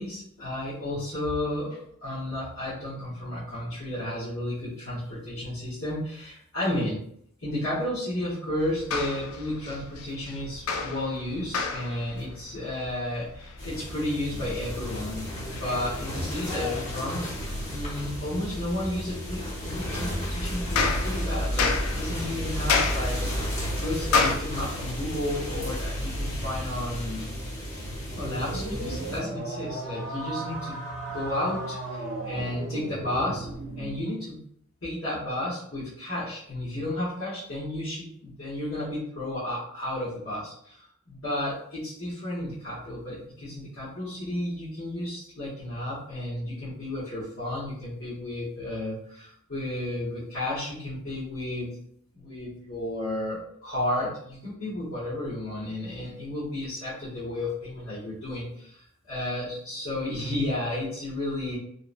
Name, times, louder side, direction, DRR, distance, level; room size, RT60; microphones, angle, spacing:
voice 1, 0.0-7.0 7.4-15.3 15.6-17.2 17.7-27.3 28.1-30.8 31.1-33.5 33.7-34.4 34.8-51.8 52.1-61.6, left 1 dB, 60° left, -11 dB, 1.0 m, -32 dB
sound 1, 8.6-24.4, left 4 dB, 80° left, 0.3 m, -33 dB
sound 2, 13.6-29.2, equal, 30° left, 0.7 m, -32 dB
sound 3, 28.1-34.0, right 2 dB, 60° right, 0.7 m, -35 dB
2.8 x 2.1 x 2.4 m, 0.67 s
head